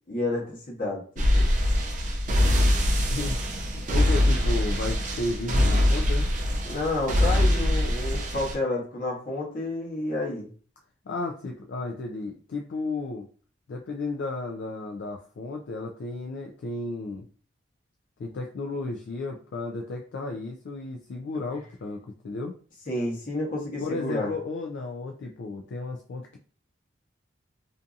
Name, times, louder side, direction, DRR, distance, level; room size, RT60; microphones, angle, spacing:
voice 1, 0.1-1.5 6.6-10.5 22.9-24.3, left 2 dB, 45° left, -3 dB, 0.9 m, -30 dB
sound 1, 1.2-8.5, left 1 dB, 40° right, 0.4 m, -23 dB
voice 2, 3.7-6.3 11.1-13.3 13.7-17.3 18.2-22.5 23.8-26.4, left 3 dB, 65° left, 1 dB, 0.3 m, -33 dB
2.6 x 2.5 x 2.3 m, 0.41 s
head